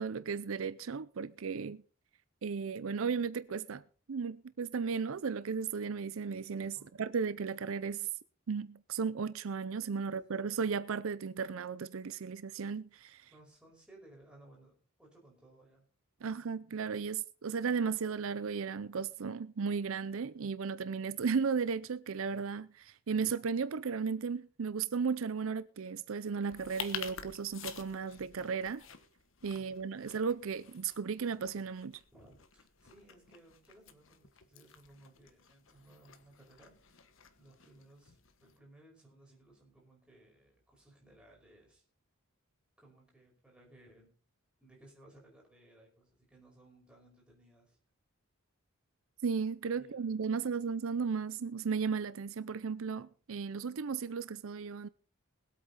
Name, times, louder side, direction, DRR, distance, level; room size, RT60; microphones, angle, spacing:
voice 1, 0.0-1.8 2.4-3.8 4.1-8.1 8.5-13.3 16.2-28.8 29.4-32.0 49.2-54.9, right 5 dB, 70° right, 0.5 m, -35 dB
voice 2, 13.3-15.9 16.2-16.5 29.6-29.9 32.1-37.1 37.4-41.8 42.8-44.1 44.6-47.8 49.7-50.2, right 1 dB, 5° right, 5.3 m, -60 dB
sound 1, 26.4-38.6, left 8 dB, 65° left, 1.4 m, -49 dB
21.0 x 8.4 x 4.1 m
head